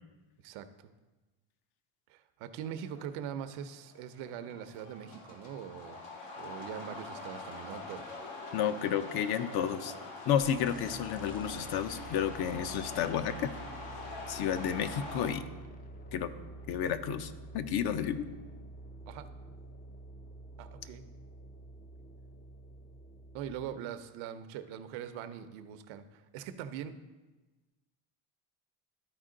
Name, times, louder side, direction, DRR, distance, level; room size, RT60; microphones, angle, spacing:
voice 1, 0.4-0.9 2.1-6.0 6.4-8.2 19.1-19.3 20.6-21.0 23.3-26.9, right 9 dB, 85° right, 11 dB, 0.7 m, -42 dB
sound 1, 2.6-15.3, left 3 dB, 80° left, 2.0 m, -45 dB
voice 2, 8.5-9.9 10.3-13.5 14.3-15.4 16.1-16.3 16.7-18.3, left 8 dB, 55° left, 11 dB, 0.6 m, -31 dB
sound 2, 10.4-23.7, right 1 dB, 20° left, 0.4 m, -48 dB
12.5 x 4.4 x 3.7 m, 1.2 s
cardioid pair, 120°, 47 cm